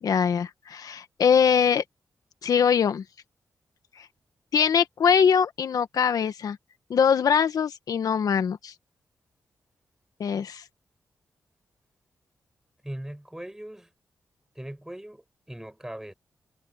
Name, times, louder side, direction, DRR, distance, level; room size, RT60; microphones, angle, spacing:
voice 1, 0.0-1.8 2.4-3.0 4.0-4.1 4.5-6.6 6.9-8.7 10.2-10.6, left 7 dB, 75° left, 1.6 m, -22 dB
voice 2, 12.8-13.9 14.5-16.1, right 1 dB, 10° right, 6.8 m, -39 dB
cardioid pair, 80°, 6 cm